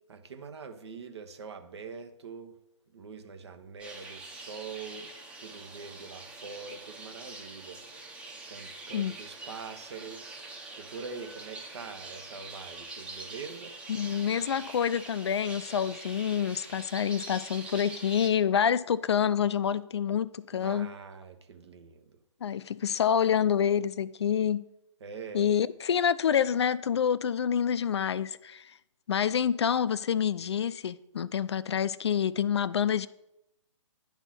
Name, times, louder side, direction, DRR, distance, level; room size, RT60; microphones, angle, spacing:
voice 1, 0.1-2.6 2.9-5.1 5.4-7.8 8.2-10.4 10.8-13.8 20.5-22.2 25.0-25.5, right 5 dB, 55° right, 1.0 m, -44 dB
sound 1, 3.8-18.3, right 2 dB, 5° right, 0.7 m, -44 dB
voice 2, 13.9-20.9 22.4-24.7 25.3-28.8 29.1-33.1, left 8 dB, 60° left, 0.4 m, -27 dB
10.5 x 3.5 x 5.8 m
figure-of-eight pair, 135°, 16 cm